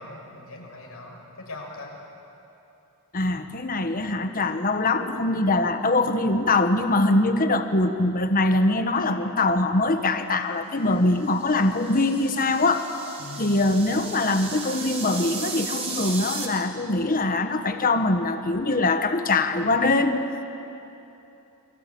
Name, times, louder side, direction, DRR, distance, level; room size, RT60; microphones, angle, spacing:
voice 1, 0.0-1.9 13.2-13.5, left 2 dB, 85° left, 0 dB, 6.5 m, -40 dB
voice 2, 3.1-12.9 13.4-20.2, left 2 dB, 40° left, 7 dB, 1.3 m, -23 dB
sound 1, 11.3-16.5, right 4 dB, 30° right, 3.8 m, -35 dB
29.5 x 23.0 x 8.6 m, 2.9 s
head